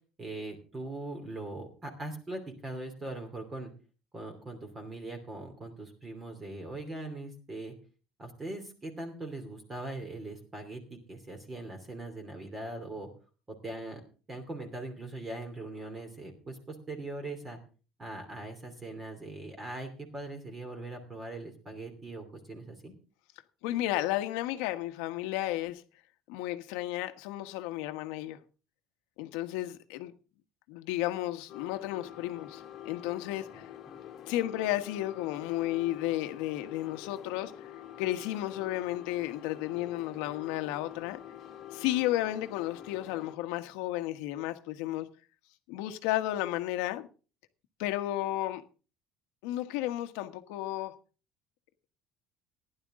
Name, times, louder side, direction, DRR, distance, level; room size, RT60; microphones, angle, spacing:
voice 1, 0.2-3.7 4.1-7.7 8.2-13.1 13.6-14.0 14.3-17.6 18.0-22.9, right 2 dB, 20° right, 2.7 m, -41 dB
voice 2, 23.6-25.8 26.3-28.4 29.2-30.1 30.7-33.7 34.3-37.7 38.0-41.2 41.7-45.1 45.7-47.1 47.8-48.6 49.4-50.9, left 15 dB, 80° left, 1.3 m, -33 dB
sound 1, 31.5-43.4, left 11 dB, 40° left, 1.7 m, -47 dB
15.5 x 11.0 x 3.7 m
cardioid pair, 160°, 0 cm